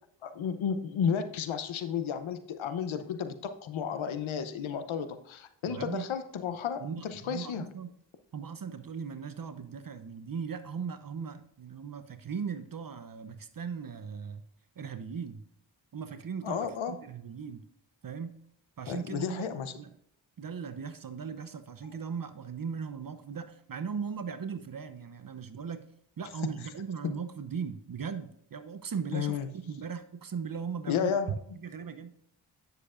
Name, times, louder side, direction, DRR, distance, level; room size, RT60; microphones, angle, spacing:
voice 1, 0.2-7.7 16.4-17.0 18.9-19.7 26.4-26.5 29.1-29.5 30.9-31.3, left 7 dB, 90° left, 10 dB, 0.8 m, -32 dB
voice 2, 5.7-6.1 6.8-7.9 8.3-14.4 14.8-15.4 15.9-17.6 18.0-18.3 18.8-19.9 20.4-25.8 26.2-32.1, right 6 dB, 45° right, 11 dB, 0.8 m, -38 dB
9.6 x 6.7 x 2.5 m, 0.72 s
cardioid pair, 50°, 46 cm